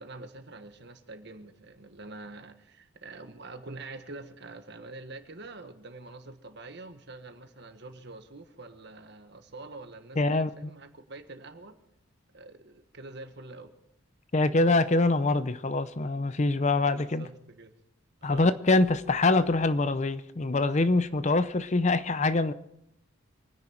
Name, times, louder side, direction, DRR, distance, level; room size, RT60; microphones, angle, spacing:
voice 1, 0.0-11.7 12.3-13.7 16.9-17.7 18.2-18.5, right 2 dB, 55° right, 1.4 m, -45 dB
voice 2, 10.2-10.5 14.3-17.3 18.2-22.5, left 2 dB, 35° left, 0.6 m, -24 dB
25.5 x 10.0 x 4.5 m
head